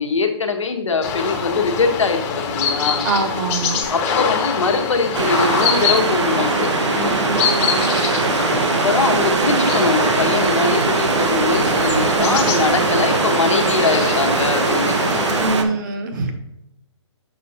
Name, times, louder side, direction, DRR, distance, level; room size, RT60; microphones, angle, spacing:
voice 1, 0.0-3.1 3.9-7.1 8.5-15.4, left 4 dB, 85° left, 4 dB, 1.2 m, -22 dB
sound 1, 1.0-15.5, left 6 dB, 30° left, 1.1 m, -24 dB
voice 2, 3.0-3.8 7.1-7.9 15.4-16.3, right 3 dB, 40° right, 4 dB, 1.3 m, -24 dB
sound 2, 3.8-6.6, right 3 dB, 10° right, 0.6 m, -40 dB
sound 3, 5.1-15.6, right 4 dB, 70° right, 0.9 m, -20 dB
6.7 x 6.4 x 2.9 m, 0.84 s
hypercardioid pair, 145°, 15 cm